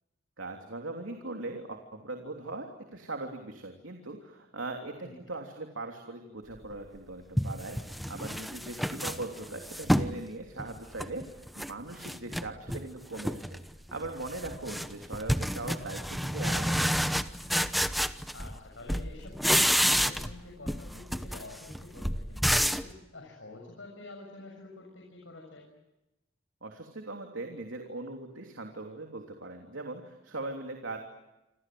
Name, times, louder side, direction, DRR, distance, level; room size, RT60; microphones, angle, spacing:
voice 1, 0.4-13.6 13.9-17.0 26.6-31.0, right 2 dB, 90° right, 3 dB, 3.3 m, -40 dB
sound 1, 6.7-6.8 7.4-10.2 10.6-11.7 12.0-12.8 13.2-13.6 13.9-18.6 18.9-20.4 20.7-22.9, equal, ahead, 1.0 m, -29 dB
voice 2, 18.3-25.7, left 2 dB, 80° left, 0 dB, 7.0 m, -48 dB
27.5 x 27.5 x 7.8 m, 0.98 s
head